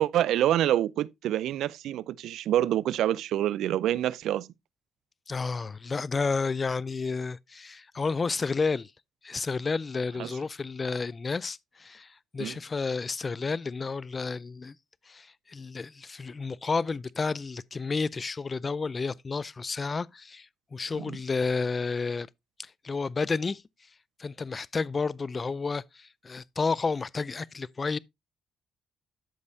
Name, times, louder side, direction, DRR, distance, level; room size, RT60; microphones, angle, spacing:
voice 1, 0.0-4.5 10.2-10.3 12.4-12.5 21.1-21.2, right 12 dB, 80° right, 0.4 m, -26 dB
voice 2, 5.3-8.9 9.2-14.7 15.1-22.3 22.6-23.6 24.2-28.0, left 4 dB, 30° left, 0.4 m, -31 dB
12.5 x 5.4 x 2.6 m
cardioid pair, 90°, 0 cm